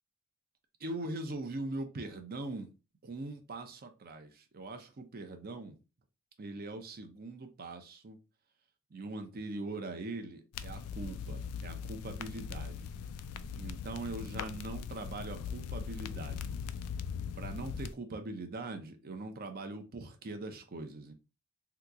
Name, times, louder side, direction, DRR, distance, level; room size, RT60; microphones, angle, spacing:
voice 1, 0.8-2.7 3.0-5.8 6.4-8.2 8.9-12.9 13.5-16.5 17.4-21.1, right 2 dB, 45° right, 0.6 m, -41 dB
sound 1, 10.5-17.9, left 6 dB, 90° left, 0.3 m, -40 dB
2.9 x 2.3 x 3.7 m
head